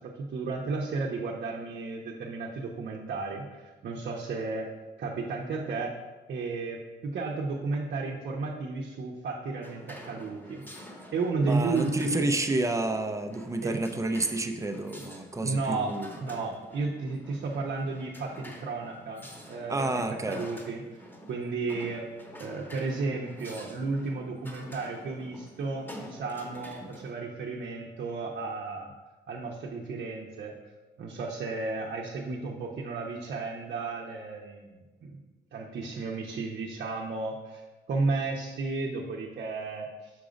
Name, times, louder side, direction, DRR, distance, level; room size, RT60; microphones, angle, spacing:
voice 1, 0.0-4.7 5.0-5.9 6.3-12.3 13.6-13.8 15.4-15.9 16.2-21.0 21.3-22.0 22.4-28.9 29.3-30.5 31.0-35.2 35.5-37.6 37.9-40.1, right 3 dB, 55° right, -2 dB, 0.8 m, -33 dB
sound 1, 9.6-27.1, equal, 10° left, 1.1 m, -48 dB
voice 2, 11.4-16.1 19.7-20.4, right 2 dB, 15° right, 6 dB, 0.6 m, -29 dB
6.1 x 3.7 x 5.0 m, 1.3 s
cardioid pair, 90°, 20 cm